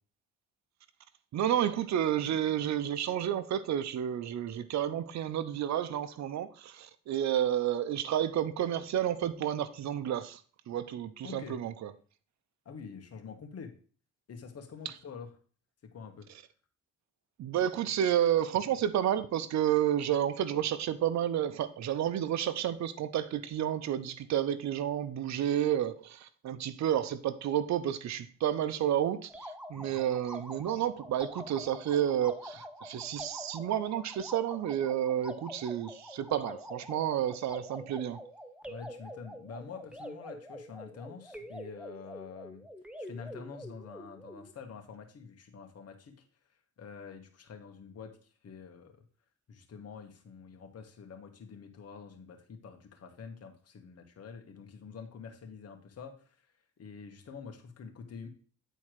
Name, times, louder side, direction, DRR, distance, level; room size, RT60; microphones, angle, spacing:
voice 1, 1.3-10.4 10.7-11.9 17.4-38.2, right 10 dB, 65° right, 0.8 m, -31 dB
voice 2, 11.2-11.6 12.7-13.7 14.3-15.3 15.8-16.3 29.7-30.0 38.6-42.6 43.0-46.2 46.8-49.1 49.5-56.4 56.8-58.3, left 6 dB, 55° left, 1.9 m, -47 dB
sound 1, 29.3-44.5, equal, 5° right, 1.0 m, -46 dB
9.3 x 4.4 x 4.9 m
cardioid pair, 90°, 30 cm